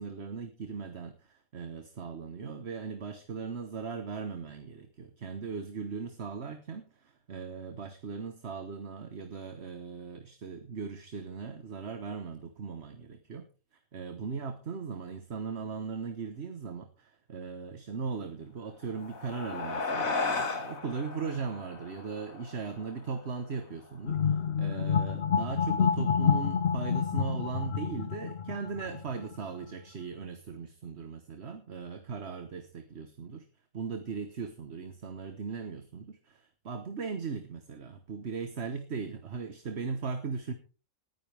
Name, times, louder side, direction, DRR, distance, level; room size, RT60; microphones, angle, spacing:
voice 1, 0.0-13.5 13.7-33.4 33.7-40.5, right 5 dB, 55° right, 8 dB, 1.4 m, -38 dB
sound 1, 18.8-23.6, left 4 dB, 80° left, 2.3 m, -35 dB
sound 2, 24.0-29.3, left 7 dB, 55° left, 0.9 m, -28 dB
19.5 x 10.0 x 3.4 m, 0.35 s
omnidirectional pair, 1.4 m